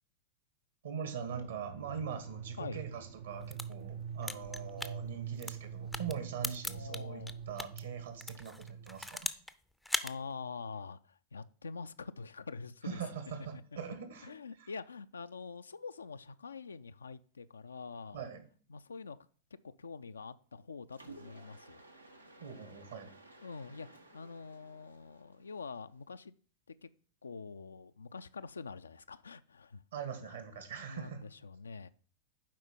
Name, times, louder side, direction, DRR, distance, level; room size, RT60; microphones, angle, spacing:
voice 1, 0.8-9.3 12.8-14.3 14.6-14.7 18.1-18.4 22.4-23.1 29.9-31.2, right 7 dB, 65° right, 1.7 m, -42 dB
sound 1, 1.3-9.1, right 7 dB, 50° right, 0.4 m, -45 dB
sound 2, 3.3-7.8 8.2-9.5 9.8-10.1, left 1 dB, ahead, 0.5 m, -39 dB
voice 2, 6.7-7.4 10.0-13.0 13.5-13.6 14.2-18.3 18.7-19.2 19.6-21.8 23.4-26.3 26.7-26.9 27.2-29.8 30.9-31.9, left 4 dB, 75° left, 0.3 m, -45 dB
Mechanisms, 20.9-26.0, right 2 dB, 85° right, 0.9 m, -56 dB
7.5 x 5.0 x 5.4 m
figure-of-eight pair, 90°, 0 cm